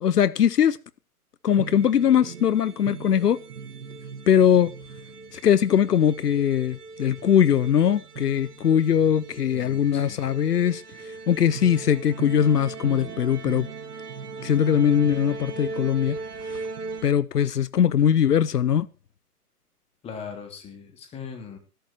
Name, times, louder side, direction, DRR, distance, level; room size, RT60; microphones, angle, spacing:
voice 1, 0.0-0.8 1.4-3.4 4.3-4.7 5.3-10.8 11.3-13.7 14.4-16.2 17.0-18.9, left 9 dB, 80° left, 0.8 m, -21 dB
sound 1, 1.5-17.1, right 4 dB, 75° right, 1.6 m, -38 dB
voice 2, 9.5-10.2 20.0-21.6, left 6 dB, 15° left, 2.8 m, -39 dB
14.5 x 11.5 x 4.5 m
hypercardioid pair, 145°, 46 cm